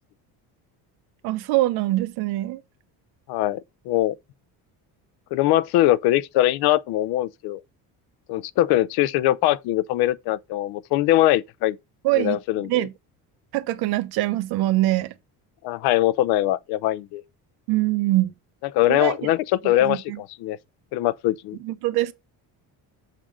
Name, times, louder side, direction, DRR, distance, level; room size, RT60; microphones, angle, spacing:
voice 1, 1.2-2.6 12.0-12.9 13.5-15.1 17.7-18.3 18.9-19.2 19.8-20.2 21.6-22.1, right 17 dB, 70° right, 0.9 m, -23 dB
voice 2, 3.3-4.1 5.3-7.6 8.3-11.8 12.2-12.9 15.6-17.2 18.7-20.6 20.9-21.6, left 14 dB, 75° left, 0.6 m, -22 dB
7.5 x 3.8 x 5.0 m
cardioid pair, 145°, 39 cm